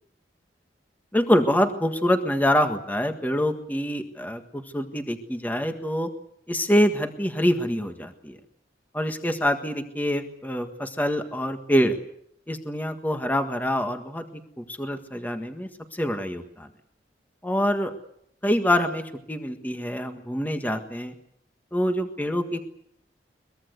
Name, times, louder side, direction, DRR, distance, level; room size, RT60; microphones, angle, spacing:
voice 1, 1.1-6.1 6.5-8.4 8.9-12.0 12.5-16.7 17.4-17.9 18.4-21.1 21.7-22.6, equal, 10° left, 6 dB, 1.6 m, -25 dB
23.0 x 21.5 x 8.1 m, 0.73 s
head